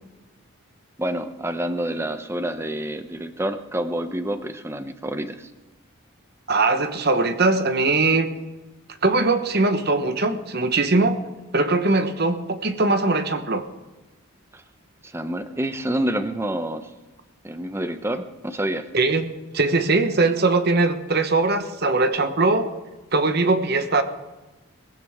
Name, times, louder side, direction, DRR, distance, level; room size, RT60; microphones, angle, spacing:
voice 1, 1.0-5.5 14.5-14.6 15.0-16.9 17.4-18.9, right 1 dB, 10° right, 9 dB, 0.8 m, -28 dB
voice 2, 6.5-8.3 9.0-11.2 11.5-13.6 18.9-19.3 19.5-22.7 23.1-24.0, right 3 dB, 45° right, 9 dB, 1.1 m, -21 dB
20.5 x 15.5 x 3.6 m, 1.1 s
head